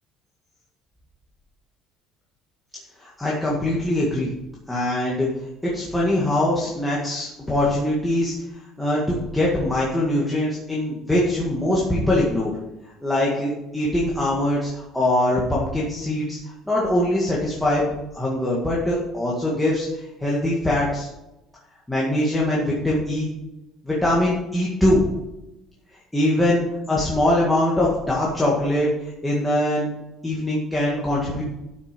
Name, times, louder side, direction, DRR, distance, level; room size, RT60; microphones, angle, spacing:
voice 1, 3.0-4.3 4.7-5.3 5.6-8.3 8.8-12.5 13.0-16.4 16.7-21.1 21.9-23.3 23.8-25.0 26.1-29.9 30.2-31.4, left 1 dB, 5° left, -6 dB, 1.9 m, -22 dB
13.0 x 6.4 x 5.2 m, 0.97 s
cardioid pair, 180°, 0 cm